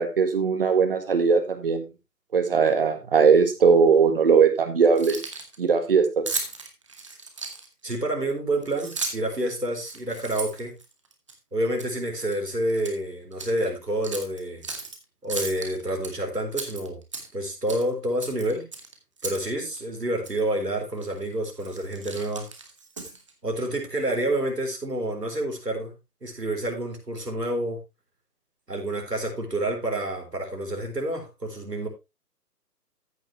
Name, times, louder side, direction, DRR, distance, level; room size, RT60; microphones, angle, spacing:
voice 1, 0.0-1.8 2.3-5.2 5.6-6.3, right 5 dB, 35° right, 9 dB, 1.8 m, -20 dB
Keys jangling, 4.8-5.6 6.3-7.9 8.6-9.4 9.8-11.3 11.8-12.0 12.3-13.0 13.3-13.5 14.0-15.0 15.3-16.1 16.5-17.4 17.7-17.9 18.2-19.5 19.7-19.8 20.2-20.4 21.0-21.2 21.6-23.3, right 4 dB, 20° right, 1.0 m, -35 dB
voice 2, 7.8-10.8 11.5-14.6 15.2-17.0 17.3-18.7 19.2-22.5 23.4-25.9 26.2-27.8 28.7-31.9, right 1 dB, 80° right, 2 dB, 4.1 m, -28 dB
14.0 x 6.3 x 3.2 m, 0.25 s
figure-of-eight pair, 145°, 48 cm